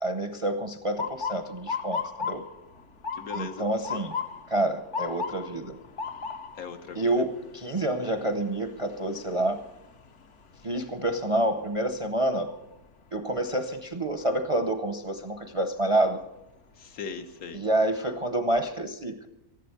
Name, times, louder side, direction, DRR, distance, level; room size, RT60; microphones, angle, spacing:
voice 1, 0.0-2.4 3.4-4.1 4.5-5.8 7.0-9.6 10.6-12.5 13.1-16.2 17.5-19.3, right 1 dB, 30° right, 8 dB, 0.6 m, -28 dB
Motor vehicle (road) / Siren, 1.0-12.9 13.3-13.8 14.6-14.9 16.7-17.0 17.5-17.6 18.0-18.7, left 5 dB, 55° left, 1.2 m, -38 dB
voice 2, 3.1-3.7 6.5-7.3 16.7-17.6, left 5 dB, 70° left, 6 dB, 1.5 m, -39 dB
14.5 x 12.0 x 6.7 m, 0.87 s
omnidirectional pair, 1.6 m